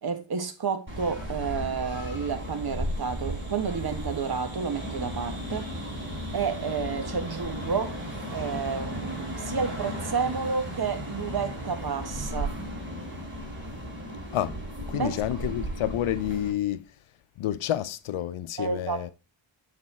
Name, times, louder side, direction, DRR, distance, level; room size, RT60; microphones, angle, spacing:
voice 1, 0.0-5.7 6.3-8.0 8.3-12.6 14.9-15.1 18.6-19.1, right 5 dB, 50° right, 1.5 m, -30 dB
sound 1, 0.9-16.5, equal, 25° right, 4.5 m, -35 dB
voice 2, 14.9-16.9 17.4-19.1, left 12 dB, 80° left, 0.7 m, -29 dB
8.6 x 4.3 x 4.3 m
cardioid pair, 75°, 48 cm